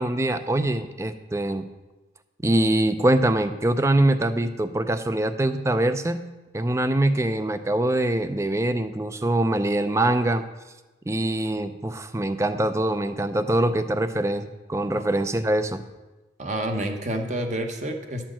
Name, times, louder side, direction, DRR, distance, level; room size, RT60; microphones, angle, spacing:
voice 1, 0.0-1.7 2.4-6.2 6.5-10.4 11.1-15.8, right 1 dB, 15° right, 10 dB, 0.4 m, -23 dB
voice 2, 16.4-18.3, right 1 dB, 40° right, 4 dB, 1.0 m, -29 dB
11.5 x 4.5 x 7.4 m, 1.1 s
head